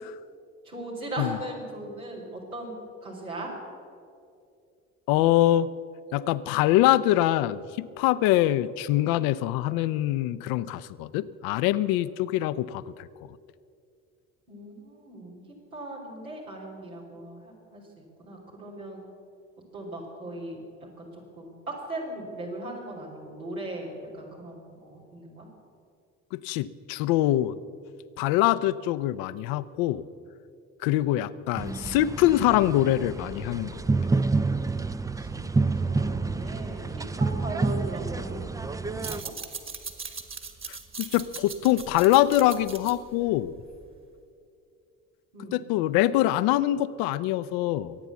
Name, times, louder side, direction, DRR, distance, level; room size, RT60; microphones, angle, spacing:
voice 1, 0.6-2.7 3.0-3.5 14.5-15.4 15.7-17.8 18.2-19.0 19.7-21.1 21.3-25.5 35.2-39.3 45.3-45.6, right 1 dB, 90° right, -4 dB, 3.3 m, -38 dB
voice 2, 5.1-5.7 6.1-7.6 8.0-13.1 26.3-27.6 28.2-30.0 30.8-33.8 40.7-43.5 45.5-48.0, left 14 dB, 60° left, 15 dB, 0.6 m, -24 dB
sound 1, 31.6-39.2, right 3 dB, 10° right, 0.4 m, -28 dB
sound 2, 38.9-44.1, right 5 dB, 30° right, 1.8 m, -40 dB
23.0 x 9.1 x 7.0 m, 2.5 s
figure-of-eight pair, 50°, 41 cm